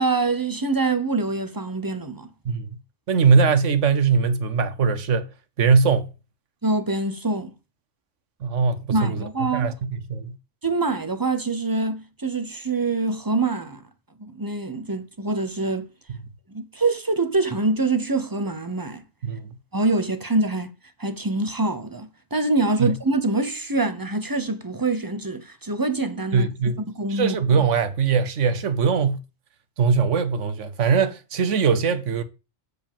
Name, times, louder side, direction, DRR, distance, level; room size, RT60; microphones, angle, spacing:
voice 1, 0.0-2.3 6.6-7.5 8.9-9.7 10.6-13.8 14.2-15.9 16.5-19.0 19.7-20.7 21.0-26.5 26.9-27.4, right 3 dB, 20° right, 0.8 m, -25 dB
voice 2, 3.1-5.3 5.6-6.1 8.4-9.2 9.5-10.4 16.1-16.2 19.2-19.5 22.8-22.9 26.3-26.8 27.1-29.2 29.8-32.2, right 5 dB, 75° right, 1.3 m, -21 dB
7.9 x 5.1 x 7.2 m
omnidirectional pair, 1.3 m